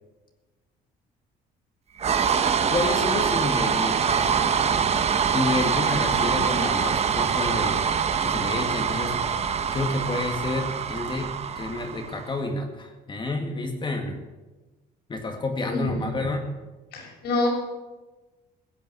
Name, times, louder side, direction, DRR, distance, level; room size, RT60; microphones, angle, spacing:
sound 1, 2.0-12.3, right 7 dB, 40° right, 1.1 m, -24 dB
voice 1, 2.7-4.4 5.3-7.9 8.2-9.2 9.7-14.2 15.1-16.5, left 2 dB, 30° left, 3 dB, 2.0 m, -29 dB
voice 2, 15.6-16.1 16.9-17.5, left 2 dB, 80° left, 0 dB, 6.2 m, -27 dB
16.5 x 9.2 x 8.1 m, 1.2 s
cardioid pair, 110°, 17 cm